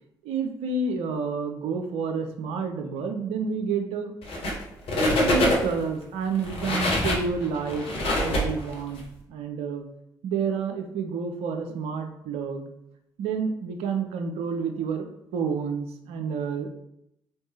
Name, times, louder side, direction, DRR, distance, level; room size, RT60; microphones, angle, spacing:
voice 1, 0.2-4.1 5.2-7.9 8.2-9.0 9.3-9.8 10.2-12.7 13.2-15.1 15.3-16.7, right 5 dB, 65° right, 5 dB, 0.5 m, -29 dB
sound 1, 4.2-4.6 4.9-5.8 6.4-9.0, left 1 dB, 55° left, 1.0 m, -25 dB
3.6 x 3.5 x 2.7 m, 0.78 s
figure-of-eight pair, 45°, 11 cm